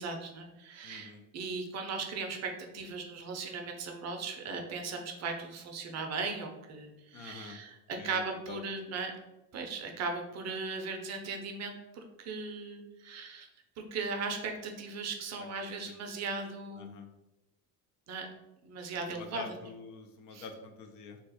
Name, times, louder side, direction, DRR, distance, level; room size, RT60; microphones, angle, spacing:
voice 1, 0.0-9.1 9.5-13.5 13.9-17.0 18.1-18.3 18.6-19.4 20.3-20.4, right 4 dB, 40° right, 3 dB, 0.5 m, -38 dB
voice 2, 0.8-1.2 7.1-7.6 7.9-8.6 15.4-15.5 15.9-16.0 16.2-16.4 16.7-17.1 19.1-21.2, left 5 dB, 50° left, 5 dB, 0.4 m, -47 dB
2.4 x 2.3 x 4.0 m, 0.99 s
cardioid pair, 120°, 40 cm